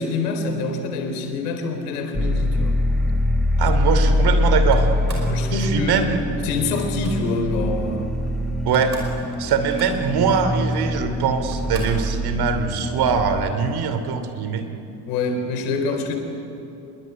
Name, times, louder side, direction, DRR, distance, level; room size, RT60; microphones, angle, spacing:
voice 1, 0.0-2.8 5.2-6.1 6.4-8.1 15.1-16.2, left 3 dB, 65° left, 6 dB, 4.1 m, -26 dB
sound 1, 2.1-13.5, left 1 dB, ahead, 1.4 m, -23 dB
voice 2, 3.6-4.9 5.5-6.2 8.6-8.9 9.4-14.7, right 6 dB, 50° right, 8 dB, 2.9 m, -22 dB
Slam, 4.7-5.4 6.7-7.2 8.3-8.4 8.6-9.2 9.5-10.2 10.9-11.0 11.5-12.1, right 1 dB, 85° right, 5.2 m, -38 dB
26.0 x 22.0 x 9.7 m, 2.7 s
figure-of-eight pair, 60°, 50 cm